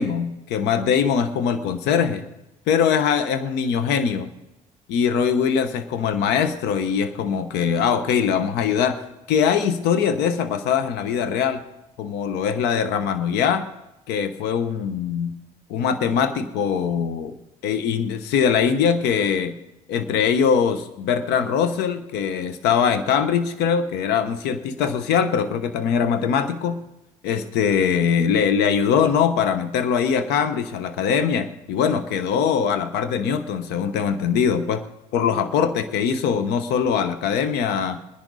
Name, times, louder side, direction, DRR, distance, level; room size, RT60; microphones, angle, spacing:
voice 1, 0.0-2.2 2.7-4.3 4.9-11.6 12.0-13.7 14.1-15.3 15.7-17.4 17.6-19.5 19.9-26.8 27.2-34.8 35.1-38.0, left 7 dB, 70° left, 11 dB, 1.0 m, -22 dB
21.0 x 10.5 x 4.1 m, 0.94 s
hypercardioid pair, 55°, 18 cm